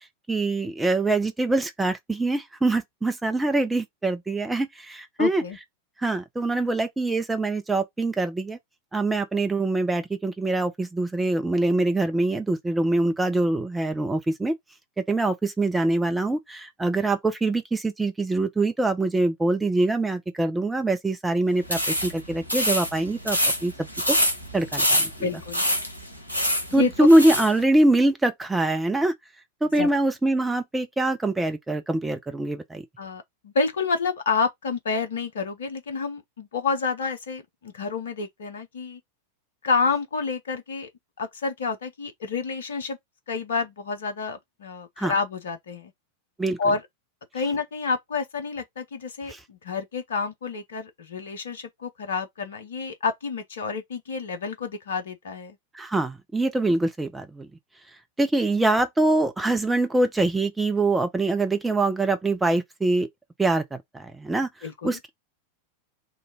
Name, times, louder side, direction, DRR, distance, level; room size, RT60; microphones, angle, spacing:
voice 1, 0.3-5.4 6.0-8.6 8.9-14.5 15.1-23.7 24.1-24.2 24.5-25.3 26.7-29.1 29.6-32.8 45.0-45.1 46.4-46.6 49.3-49.4 55.7-57.5 58.2-63.1 63.4-64.5 64.8-65.1, right 2 dB, 10° right, 0.7 m, -24 dB
voice 2, 5.2-5.6 25.2-25.6 26.7-27.1 29.8-29.9 33.0-39.0 39.6-40.9 41.2-43.0 43.3-45.9 46.6-46.8 47.3-55.6 64.6-65.0, left 4 dB, 65° left, 0.8 m, -29 dB
sound 1, 21.6-27.5, equal, 85° left, 1.1 m, -26 dB
3.0 x 2.6 x 3.7 m
figure-of-eight pair, 90°, 0 cm